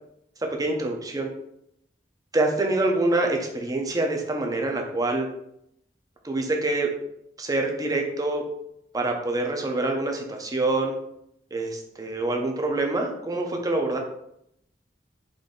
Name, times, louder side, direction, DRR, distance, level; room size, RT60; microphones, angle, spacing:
voice 1, 0.4-1.3 2.3-5.3 6.2-6.9 7.4-8.4 8.9-10.9 11.5-14.0, right 2 dB, 20° right, 2 dB, 0.6 m, -26 dB
3.9 x 2.6 x 3.7 m, 0.76 s
head